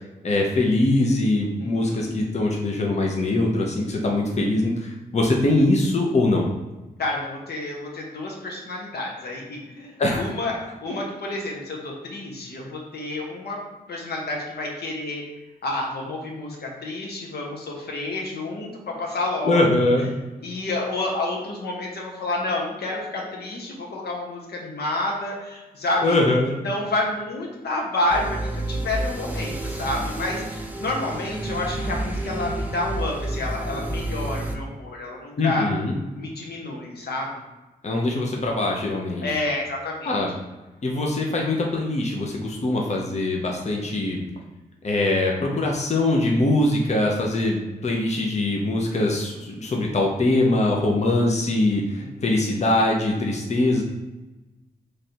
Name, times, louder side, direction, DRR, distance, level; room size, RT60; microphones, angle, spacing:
voice 1, 0.2-6.5 10.0-10.3 19.4-20.0 26.0-26.5 35.4-35.9 37.8-39.2 40.0-40.3 40.8-44.2 44.8-53.8, left 2 dB, 45° left, -1 dB, 0.7 m, -22 dB
voice 2, 1.6-2.2 7.0-13.6 13.9-15.2 15.6-19.9 20.4-26.2 26.6-35.7 36.1-37.3 39.2-40.1 52.0-52.5, left 2 dB, 75° left, -1 dB, 0.9 m, -29 dB
sound 1, 28.1-34.6, right 1 dB, 10° right, 0.6 m, -30 dB
3.3 x 2.5 x 4.3 m, 1.1 s
cardioid pair, 65°, 17 cm